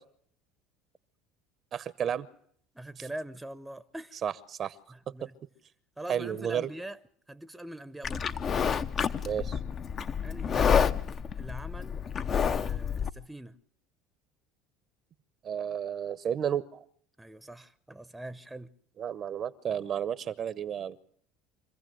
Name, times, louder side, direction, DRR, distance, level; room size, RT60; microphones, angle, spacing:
voice 1, 1.7-2.3 4.2-4.7 5.2-5.3 6.1-6.7 9.2-9.6 15.4-16.8 19.0-21.0, right 9 dB, 45° right, 0.8 m, -32 dB
voice 2, 2.7-4.2 4.9-5.4 6.0-7.0 7.3-8.3 10.2-11.0 11.3-12.0 12.3-13.6 17.2-18.7, right 1 dB, 5° right, 0.8 m, -43 dB
Livestock farm animals working animals, 8.0-13.1, left 7 dB, 40° left, 0.8 m, -29 dB
25.0 x 15.0 x 7.7 m
hypercardioid pair, 80°, 0 cm